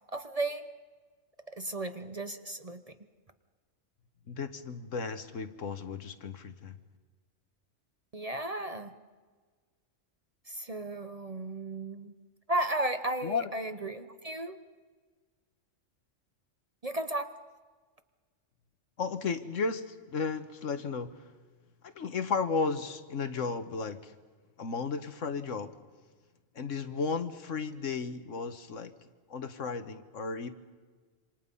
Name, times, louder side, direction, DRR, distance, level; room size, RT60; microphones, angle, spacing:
voice 1, 0.1-0.6 1.5-3.0 8.1-8.9 10.5-12.1 12.5-14.6 16.8-17.4, right 2 dB, 30° right, 9 dB, 0.9 m, -34 dB
voice 2, 4.3-6.8 13.2-13.5 19.0-21.1 21.8-24.1 24.6-25.7 26.5-28.9 29.3-30.5, left 5 dB, 70° left, 10 dB, 1.6 m, -34 dB
27.0 x 26.5 x 5.5 m, 1.5 s
omnidirectional pair, 1.3 m